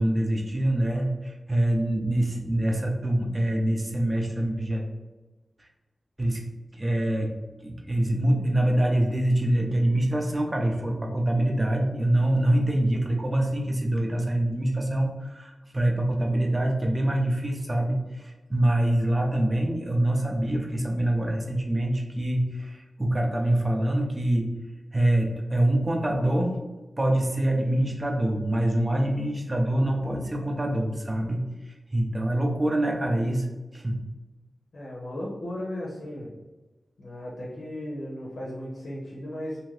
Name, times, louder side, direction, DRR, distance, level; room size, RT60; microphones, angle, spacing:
voice 1, 0.0-4.8 5.6-5.7 6.2-6.4 6.7-7.3 7.6-24.5 24.9-26.6 27.0-33.5 33.7-34.0, right 1 dB, 25° right, 1 dB, 0.5 m, -25 dB
voice 2, 34.7-36.3 37.0-39.6, left 1 dB, 80° left, -5 dB, 0.7 m, -36 dB
2.8 x 2.6 x 3.1 m, 1.2 s
wide cardioid pair, 110°, 0 cm